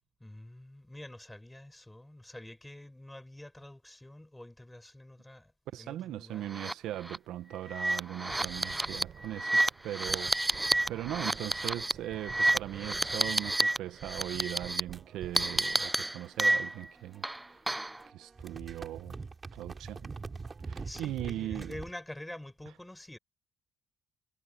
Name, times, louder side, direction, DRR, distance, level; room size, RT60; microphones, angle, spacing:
voice 1, 0.2-5.5 5.8-6.5 20.8-23.2, left 1 dB, 10° left, 7.4 m, -47 dB
voice 2, 5.7-17.6 18.1-19.2 19.5-20.1 20.6-21.8, right 13 dB, 80° right, 0.9 m, -39 dB
sound 1, 6.5-6.7 7.0-7.2 7.7-13.8 14.0-14.8 15.4-16.9 17.2-18.0, right 1 dB, 10° right, 0.3 m, -30 dB
sound 2, 8.2-15.9, right 8 dB, 60° right, 3.1 m, -50 dB
sound 3, 14.9-17.6 17.8-21.9, right 4 dB, 30° right, 3.4 m, -45 dB
cardioid pair, 80°, 0 cm